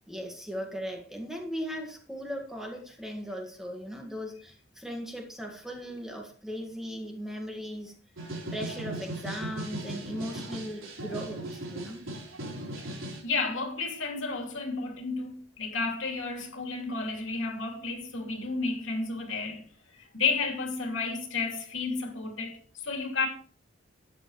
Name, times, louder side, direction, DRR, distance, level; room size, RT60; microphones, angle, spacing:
voice 1, 0.1-7.9 8.5-12.1, equal, ahead, 1.8 m, -38 dB
sound 1, 8.2-13.2, right 1 dB, 75° right, 4.1 m, -38 dB
voice 2, 13.2-19.6 20.0-23.3, left 4 dB, 70° left, 2.7 m, -32 dB
13.0 x 9.2 x 3.2 m
head